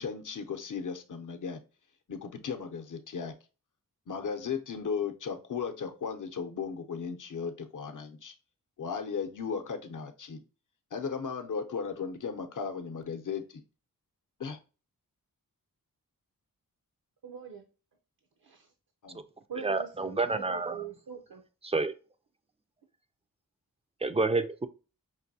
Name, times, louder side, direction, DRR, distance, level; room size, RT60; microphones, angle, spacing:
voice 1, 0.0-1.6 2.1-3.3 4.1-8.3 8.8-10.4 10.9-13.6 14.4-14.6 19.0-19.2, left 6 dB, 60° left, 0.7 m, -36 dB
voice 2, 17.2-17.7 18.4-18.7 19.5-21.4, right 7 dB, 75° right, 0.7 m, -42 dB
voice 3, 19.6-20.8 21.6-21.9 24.0-24.7, right 3 dB, 20° right, 0.4 m, -29 dB
5.4 x 2.6 x 2.7 m
wide cardioid pair, 90°, 35 cm